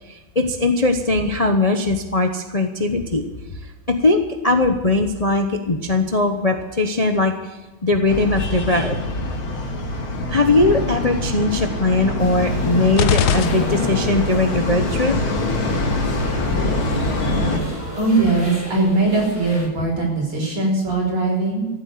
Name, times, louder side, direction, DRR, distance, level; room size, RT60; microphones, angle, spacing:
voice 1, 0.1-3.2 3.6-9.0 10.3-15.1, left 2 dB, 45° left, 5 dB, 0.5 m, -20 dB
sound 1, 8.1-17.6, left 2 dB, 90° left, 2.7 m, -24 dB
sound 2, 12.2-19.7, left 1 dB, 5° left, 3.4 m, -33 dB
sound 3, 13.0-14.3, left 8 dB, 60° left, 1.2 m, -22 dB
voice 2, 18.0-21.7, right 2 dB, 90° right, -2 dB, 6.3 m, -20 dB
14.5 x 8.2 x 9.2 m, 1.1 s
omnidirectional pair, 2.2 m